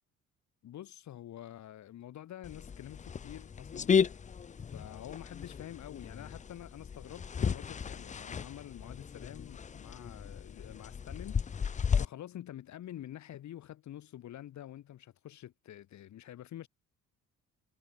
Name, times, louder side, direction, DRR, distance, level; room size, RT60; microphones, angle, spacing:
voice 1, 0.6-4.2 4.7-11.7 12.0-16.7, left 12 dB, 65° left, 1.6 m, -47 dB
sound 1, 2.4-12.1, left 6 dB, 25° left, 0.5 m, -34 dB
cardioid pair, 90°, 30 cm